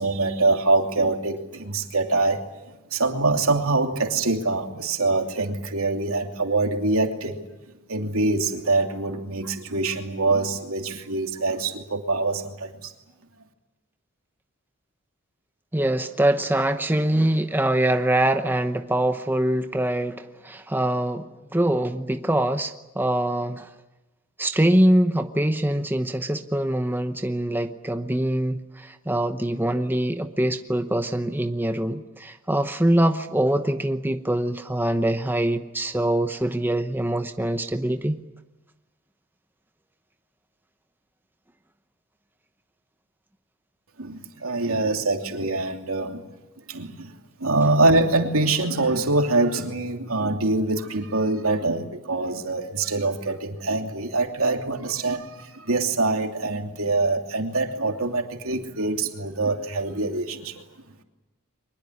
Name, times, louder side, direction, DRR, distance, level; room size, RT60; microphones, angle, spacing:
voice 1, 0.0-2.4 2.9-7.4 7.9-12.9 44.0-46.2 46.7-47.1 47.4-60.6, right 2 dB, 75° right, 4 dB, 2.9 m, -24 dB
voice 2, 15.7-23.7 24.4-38.2, right 1 dB, 10° right, 7 dB, 0.9 m, -24 dB
24.0 x 21.0 x 9.9 m, 1.0 s
head